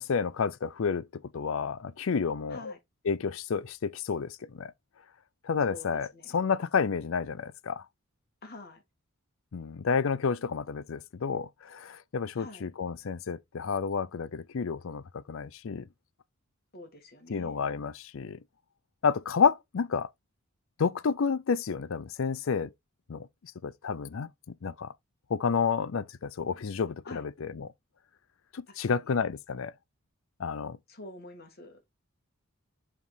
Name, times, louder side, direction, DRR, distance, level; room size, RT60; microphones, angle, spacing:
voice 1, 0.0-2.7 3.1-4.7 5.4-6.1 6.3-7.9 9.5-15.9 17.3-18.4 19.0-20.1 20.8-22.7 23.1-23.3 23.6-24.9 25.3-27.7 28.5-29.7 30.4-30.8, left 5 dB, 65° left, 0.5 m, -30 dB
voice 2, 2.5-2.8 5.7-6.4 8.4-8.8 12.4-12.7 16.7-17.6 27.0-27.3 28.7-29.2 30.9-31.8, left 2 dB, 45° left, 1.8 m, -47 dB
7.2 x 3.6 x 4.0 m
head